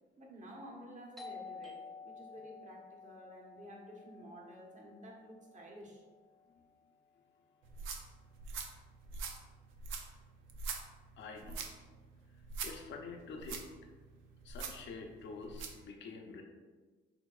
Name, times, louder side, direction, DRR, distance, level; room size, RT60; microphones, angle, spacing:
voice 1, 0.2-6.0, equal, 40° right, -1 dB, 1.1 m, -52 dB
Doorbell, 1.2-6.6, left 4 dB, ahead, 0.5 m, -52 dB
sound 1, 7.6-15.8, right 5 dB, 90° right, 0.5 m, -45 dB
voice 2, 11.2-11.7 12.6-13.7 14.4-16.4, left 4 dB, 65° left, 3 dB, 0.7 m, -47 dB
6.8 x 2.8 x 2.4 m, 1.4 s
cardioid pair, 90°, 20 cm